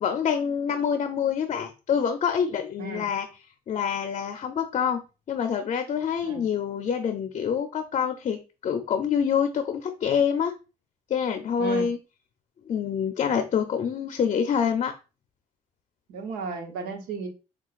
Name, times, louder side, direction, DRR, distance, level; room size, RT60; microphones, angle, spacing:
voice 1, 0.0-3.3 3.7-5.0 5.3-10.5 11.1-12.0 12.7-14.9, left 7 dB, 50° left, 7 dB, 0.5 m, -26 dB
voice 2, 16.1-17.3, right 4 dB, 85° right, 4 dB, 0.9 m, -34 dB
5.6 x 2.3 x 2.4 m, 0.31 s
supercardioid pair, 75°, 15 cm